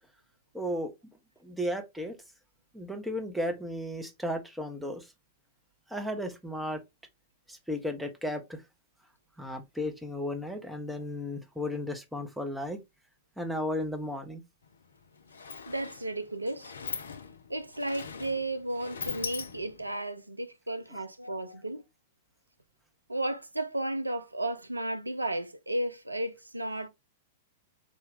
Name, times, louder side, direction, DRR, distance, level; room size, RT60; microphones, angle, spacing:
voice 1, 0.5-0.9 1.4-2.2 2.7-5.1 5.9-6.8 7.5-8.6 9.4-12.8 13.4-14.4 20.9-21.0, left 1 dB, 5° right, 0.7 m, -34 dB
Sliding door, 14.6-14.8 15.0-20.0, left 5 dB, 70° left, 0.4 m, -41 dB
voice 2, 15.7-16.8 17.5-21.8 23.1-26.9, right 1 dB, 85° right, 0.4 m, -33 dB
4.0 x 2.2 x 3.5 m
figure-of-eight pair, 100°, 0 cm